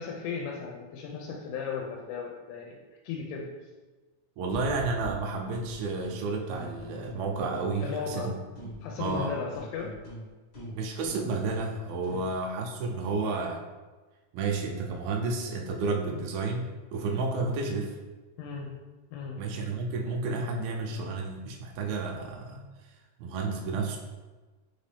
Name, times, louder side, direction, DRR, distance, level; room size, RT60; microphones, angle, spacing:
voice 1, 0.0-2.8 3.0-3.5 7.8-8.4 8.8-10.0 12.1-12.3 18.4-18.8 19.1-19.4, left 5 dB, 85° left, 0 dB, 2.5 m, -36 dB
voice 2, 4.4-8.3 9.0-9.3 10.7-13.6 14.3-18.0 19.4-22.6 23.2-24.0, right 3 dB, 80° right, 1 dB, 2.2 m, -31 dB
sound 1, 4.5-6.2 6.5-8.3 8.5-12.3, left 1 dB, 55° left, 1.1 m, -42 dB
5.8 x 2.6 x 3.4 m, 1.3 s
omnidirectional pair, 4.5 m